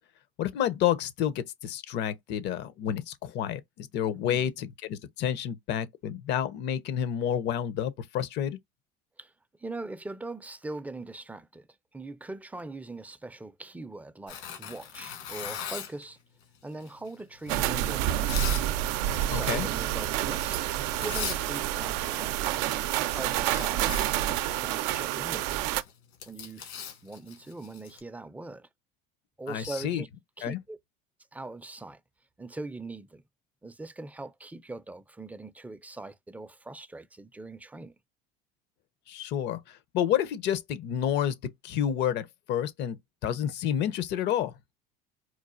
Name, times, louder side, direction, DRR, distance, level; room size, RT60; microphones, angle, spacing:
voice 1, 0.4-8.6 19.3-19.7 29.5-30.0 30.4-30.6 39.1-39.6 39.9-43.0 43.2-44.5, left 10 dB, 60° left, 0.7 m, -29 dB
voice 2, 9.6-11.7 11.9-16.2 16.6-18.6 19.3-22.4 23.1-25.7 26.3-26.7 27.0-28.7 29.4-30.1 30.4-30.8 31.3-32.0 32.4-33.2 33.6-37.9, right 2 dB, 5° right, 0.4 m, -41 dB
Tearing, 14.3-16.0 16.8-18.7 19.0-19.3 19.7-20.0 20.7-20.8 21.0-21.4 21.7-22.6 22.8-28.0, left 8 dB, 75° left, 1.8 m, -39 dB
sound 1, 17.5-25.8, right 13 dB, 80° right, 0.5 m, -28 dB
4.5 x 2.4 x 2.4 m
supercardioid pair, 105°, 20 cm